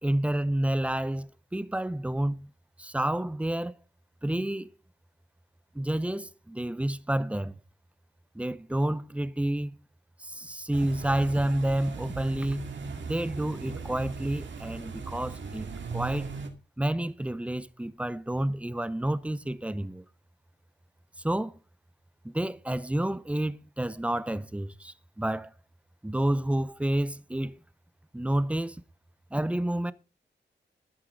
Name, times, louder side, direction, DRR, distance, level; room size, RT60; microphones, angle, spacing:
voice 1, 0.0-2.5 2.8-3.7 4.2-4.7 5.7-7.6 8.3-9.8 10.2-12.7 13.0-16.3 16.8-20.0 21.2-21.5 22.2-25.5 26.0-27.6 28.1-28.8 29.3-29.9, right 1 dB, 5° right, 0.6 m, -29 dB
sound 1, 10.7-16.5, right 4 dB, 90° right, 2.3 m, -38 dB
12.0 x 11.0 x 3.9 m
wide cardioid pair, 165°, 19 cm